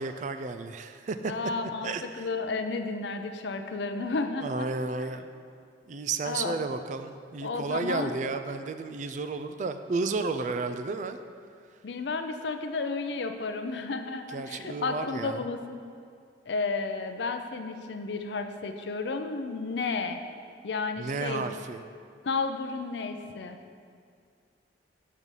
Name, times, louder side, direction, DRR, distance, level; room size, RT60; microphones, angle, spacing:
voice 1, 0.0-1.3 1.8-2.3 4.4-5.3 5.9-11.2 14.3-15.5 21.0-21.8, right 3 dB, 40° right, 9 dB, 0.3 m, -32 dB
voice 2, 1.3-1.9 2.2-4.7 6.2-6.5 7.4-8.2 11.8-15.6 16.5-20.2 20.6-21.5 22.2-23.6, left 3 dB, 70° left, 7 dB, 0.5 m, -32 dB
5.5 x 5.3 x 6.3 m, 2.3 s
head